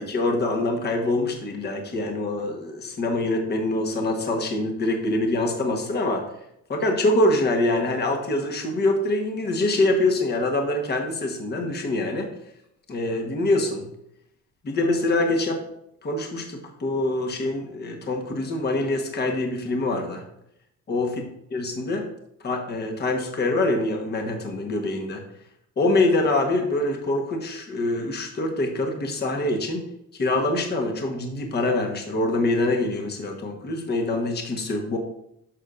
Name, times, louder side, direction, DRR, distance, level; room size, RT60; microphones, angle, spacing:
voice 1, 0.0-6.2 6.7-12.3 12.9-13.9 14.6-15.6 16.0-20.2 20.9-21.1 21.5-22.0 22.4-25.2 25.8-29.8 30.2-35.0, left 2 dB, 30° left, 3 dB, 1.3 m, -24 dB
10.5 x 6.5 x 2.6 m, 0.78 s
cardioid pair, 125°, 32 cm